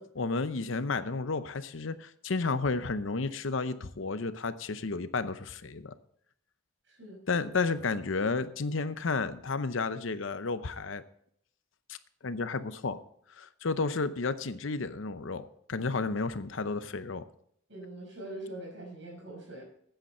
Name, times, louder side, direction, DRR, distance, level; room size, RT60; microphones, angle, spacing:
voice 1, 0.2-5.9 7.3-11.0 11.9-12.0 12.2-13.0 13.4-17.2, left 4 dB, 75° left, 12 dB, 0.8 m, -32 dB
voice 2, 6.9-7.2 17.7-19.6, right 1 dB, 65° right, -1 dB, 5.7 m, -43 dB
13.5 x 9.1 x 4.4 m, 0.68 s
head